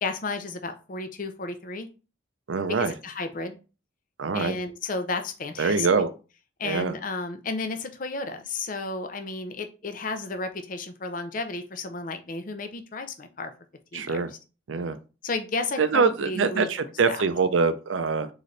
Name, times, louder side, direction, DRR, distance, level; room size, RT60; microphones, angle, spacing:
voice 1, 0.0-1.9 2.8-3.6 4.3-6.0 6.6-13.5 13.9-14.2 15.2-16.7 17.1-17.2, left 3 dB, 45° left, 8 dB, 0.6 m, -32 dB
voice 2, 2.5-2.9 4.2-4.5 5.6-6.1 6.6-6.9 13.9-14.3 14.7-15.0 15.8-18.3, right 5 dB, 75° right, 11 dB, 0.5 m, -24 dB
4.1 x 3.9 x 3.2 m, 0.33 s
head